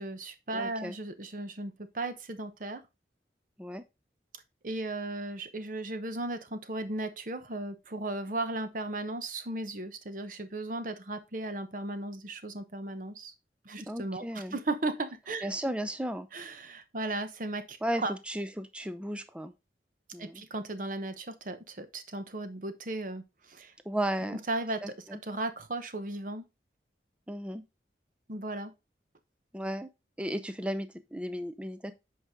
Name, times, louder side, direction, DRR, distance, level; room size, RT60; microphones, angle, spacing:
voice 1, 0.0-2.8 4.6-13.3 13.6-15.5 16.3-18.1 20.2-23.7 24.3-24.9 25.2-26.4 28.3-28.7, right 2 dB, 50° right, 0.9 m, -36 dB
voice 2, 0.5-0.9 3.6-3.8 13.9-14.6 15.4-16.3 17.8-19.5 20.1-20.4 23.9-24.4 24.8-25.2 27.3-27.6 29.5-29.9 30.2-31.9, equal, 5° right, 0.5 m, -34 dB
8.2 x 4.8 x 3.6 m
head